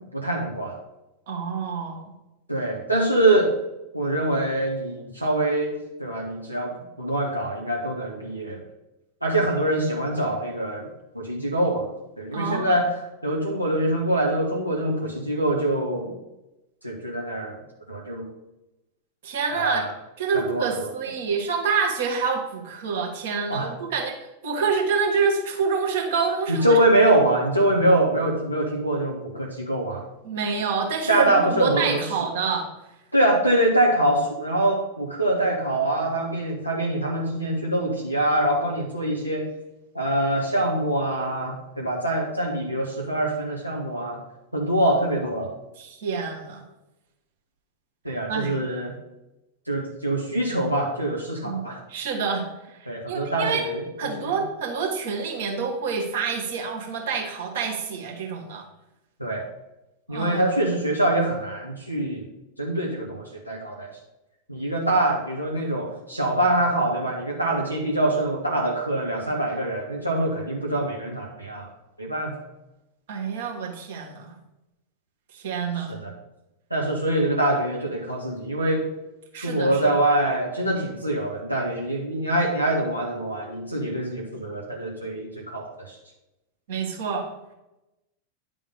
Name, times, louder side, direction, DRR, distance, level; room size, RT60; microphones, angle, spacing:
voice 1, 0.1-0.7 2.5-3.5 3.9-8.6 9.2-10.9 11.1-11.8 12.2-12.9 13.2-16.2 16.8-17.6 17.9-18.3 19.5-19.9 20.3-20.9 23.5-23.7 26.5-30.0 31.1-32.0 33.1-39.4 39.9-44.2 44.5-45.5 48.0-48.9 49.7-51.8 52.9-53.8 54.3-54.4 59.2-59.4 60.1-62.2 62.6-63.9 64.5-71.7 72.0-72.4 75.8-76.1 76.7-78.8 79.4-86.0, right 1 dB, 90° right, -3 dB, 1.0 m, -24 dB
voice 2, 1.3-2.1 12.3-12.8 19.2-19.8 20.2-24.1 24.4-26.8 30.2-32.7 45.8-46.6 48.3-48.5 51.4-51.6 51.9-53.6 54.0-58.6 60.1-60.5 73.1-74.3 75.3-75.9 79.3-80.0 86.7-87.3, right 5 dB, 55° right, 0 dB, 1.5 m, -27 dB
9.7 x 3.6 x 4.9 m, 0.96 s
figure-of-eight pair, 90°, 0 cm